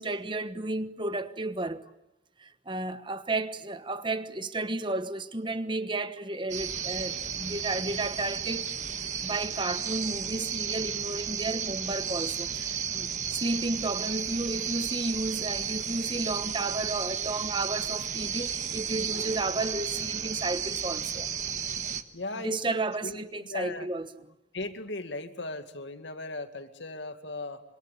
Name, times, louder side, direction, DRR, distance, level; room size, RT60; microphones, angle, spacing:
voice 1, 0.0-1.9 2.4-8.7 9.2-21.3 22.4-24.1, right 2 dB, 25° right, 1.3 m, -32 dB
sound 1, 6.5-22.0, right 8 dB, 45° right, 1.5 m, -33 dB
voice 2, 22.1-23.9 24.5-27.6, left 2 dB, 85° left, 2.2 m, -38 dB
26.0 x 26.0 x 8.7 m
head